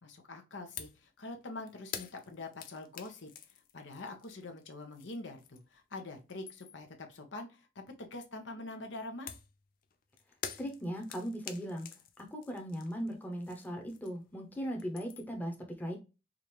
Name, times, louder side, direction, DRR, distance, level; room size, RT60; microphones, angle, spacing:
voice 1, 0.0-9.3, left 2 dB, 80° left, 4 dB, 0.9 m, -45 dB
sound 1, 0.8-1.0 1.3-5.8 6.1-6.9 9.3-14.4 14.6-15.4, left 8 dB, 50° left, 0.5 m, -47 dB
voice 2, 10.6-11.9 12.3-16.0, equal, 10° left, 1 dB, 0.8 m, -38 dB
4.9 x 2.5 x 3.0 m, 0.28 s
head